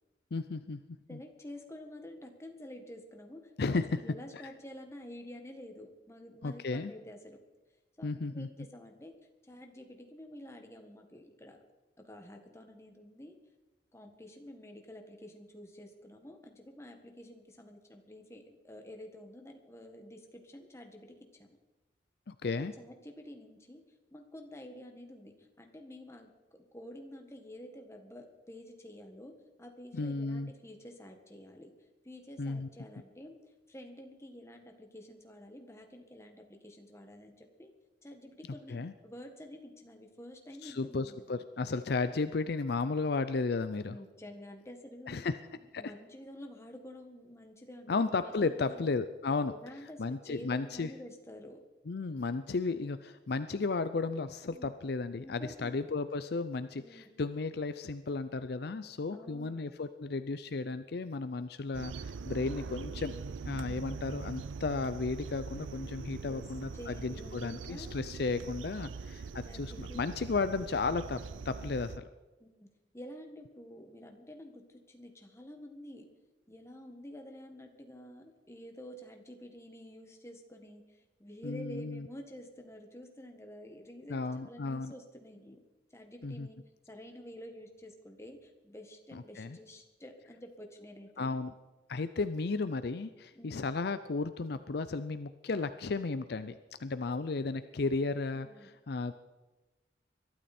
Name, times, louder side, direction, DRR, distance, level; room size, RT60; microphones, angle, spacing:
voice 1, 0.3-0.8 1.1-1.2 3.6-4.0 6.4-6.9 8.0-8.5 22.3-22.7 29.9-30.5 32.4-32.7 38.7-38.9 40.6-44.0 45.1-45.3 45.7-45.9 47.9-49.5 50.0-50.9 51.9-63.1 63.4-72.1 81.4-82.1 84.1-84.9 86.2-86.5 89.1-89.6 91.2-91.5 91.9-96.5 96.8-99.1, left 3 dB, 55° left, 12 dB, 0.5 m, -34 dB
voice 2, 1.1-7.4 8.0-9.1 9.4-11.6 12.0-13.3 13.9-21.6 22.8-23.8 24.1-26.3 26.7-31.7 32.0-33.4 33.7-37.7 38.0-41.2 43.9-45.3 45.5-48.9 49.5-51.6 54.5-54.7 55.2-55.8 56.8-57.1 59.1-59.6 63.6-64.0 66.3-66.4 66.7-67.9 69.4-70.1 72.4-72.7 72.9-76.1 76.5-85.6 85.9-86.6 86.9-91.4 93.3-93.6 98.3-98.7, left 1 dB, 15° left, 3 dB, 1.7 m, -49 dB
sound 1, 61.7-72.0, right 5 dB, 85° right, 0.5 m, -42 dB
22.5 x 12.5 x 4.3 m, 1.1 s
head